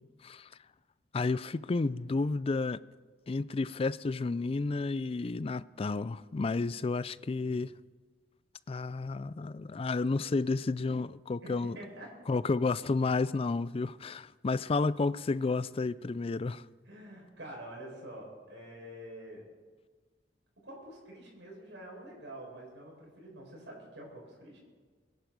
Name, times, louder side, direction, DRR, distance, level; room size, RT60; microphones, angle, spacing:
voice 1, 1.1-2.8 3.3-7.7 8.7-11.8 12.3-16.6, left 3 dB, 35° left, 0.4 m, -31 dB
voice 2, 6.9-7.4 11.4-12.1 16.8-19.4 20.6-24.6, right 1 dB, 90° right, 5.6 m, -47 dB
22.0 x 10.5 x 5.3 m
head